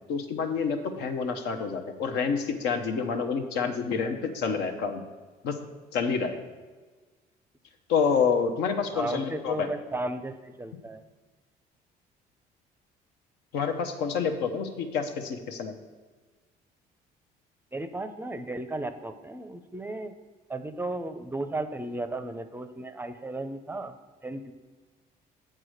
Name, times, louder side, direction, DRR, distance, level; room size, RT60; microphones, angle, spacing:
voice 1, 0.1-5.0 5.4-5.6 5.9-6.4 7.9-9.7 13.5-15.7, left 6 dB, 85° left, 6 dB, 0.9 m, -28 dB
voice 2, 8.9-11.0 17.7-20.1 20.5-23.9 24.2-24.5, right 2 dB, 10° right, 10 dB, 0.5 m, -34 dB
7.6 x 4.8 x 6.3 m, 1.3 s
cardioid pair, 110°, 17 cm